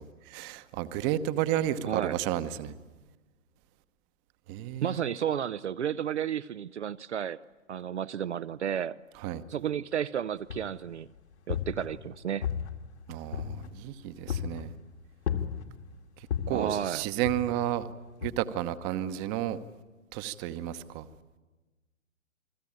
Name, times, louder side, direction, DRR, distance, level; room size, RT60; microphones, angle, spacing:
voice 1, 0.0-2.7 4.5-5.0 9.2-9.4 13.1-14.7 16.2-17.9 18.2-19.6 20.1-21.1, right 12 dB, 20° right, 13 dB, 1.0 m, -32 dB
voice 2, 1.9-2.2 4.8-7.4 7.7-9.0 9.5-11.1 11.5-12.5 16.5-17.1, right 9 dB, 60° right, 13 dB, 0.8 m, -32 dB
sound 1, 10.5-10.9 11.3-12.1 12.4-13.9 14.3-14.7 15.3-15.9 16.3-16.7 17.2-17.8 18.2-18.3, left 8 dB, 55° left, 2.0 m, -34 dB
29.0 x 21.5 x 8.8 m, 1.2 s
figure-of-eight pair, 125°, 39 cm